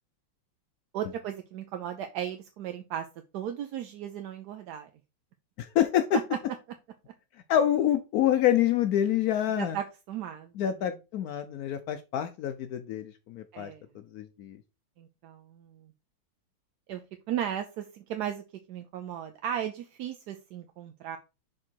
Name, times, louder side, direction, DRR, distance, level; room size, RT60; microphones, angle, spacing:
voice 1, 0.9-3.1 3.3-4.9 6.1-6.2 9.6-10.9 13.5-13.8 15.0-15.9 16.9-17.0 17.3-18.4 18.7-21.2, right 10 dB, 70° right, 6 dB, 1.0 m, -36 dB
voice 2, 5.6-6.2 7.5-9.8 10.6-13.7 14.1-14.6, left 11 dB, 90° left, 10 dB, 0.8 m, -26 dB
6.2 x 3.8 x 4.4 m, 0.28 s
omnidirectional pair, 2.1 m